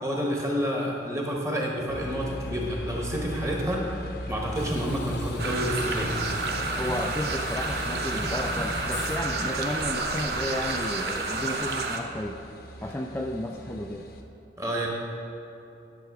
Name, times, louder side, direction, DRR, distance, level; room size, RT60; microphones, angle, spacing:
voice 1, 0.0-6.2 14.6-14.9, equal, 15° right, -2 dB, 1.4 m, -29 dB
sound 1, 1.9-14.2, left 1 dB, 60° left, 0.8 m, -38 dB
sound 2, 4.5-9.4, left 2 dB, 85° left, 1.0 m, -40 dB
sound 3, 5.4-12.0, right 3 dB, 60° right, 0.8 m, -30 dB
voice 2, 6.8-12.4 12.8-14.1, left 1 dB, 10° left, 0 dB, 0.3 m, -33 dB
11.0 x 7.0 x 4.8 m, 2.8 s
head